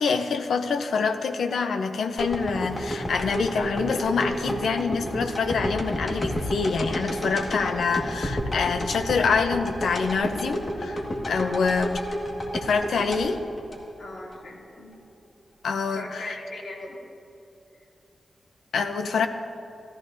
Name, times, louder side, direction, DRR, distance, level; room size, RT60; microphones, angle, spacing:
voice 1, 0.0-12.0 12.5-13.4 15.6-16.3 18.7-19.3, left 5 dB, 85° left, 8 dB, 0.7 m, -26 dB
sound 1, 2.2-14.4 14.8-14.9, equal, 30° left, 1.7 m, -30 dB
sound 2, 2.5-5.3, right 2 dB, 55° right, 2.5 m, -38 dB
voice 2, 11.3-11.7 14.0-14.9 15.9-17.0, left 2 dB, 55° left, -4 dB, 2.8 m, -39 dB
16.5 x 14.0 x 2.7 m, 2.5 s
wide cardioid pair, 120°, 0 cm